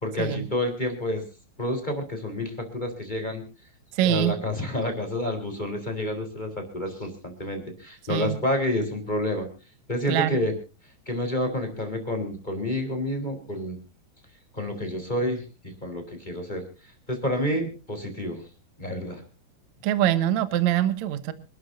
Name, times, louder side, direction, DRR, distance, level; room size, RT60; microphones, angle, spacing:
voice 1, 0.0-1.2 1.6-3.4 4.0-9.5 9.9-10.5 11.0-13.8 14.5-15.4 15.8-16.7 17.1-18.4 18.8-19.2, left 1 dB, 10° left, 5 dB, 3.3 m, -29 dB
voice 2, 4.0-4.3 8.1-8.4 10.1-10.4 19.8-21.3, right 12 dB, 65° right, 12 dB, 1.8 m, -24 dB
27.0 x 12.5 x 2.6 m, 0.33 s
omnidirectional pair, 4.9 m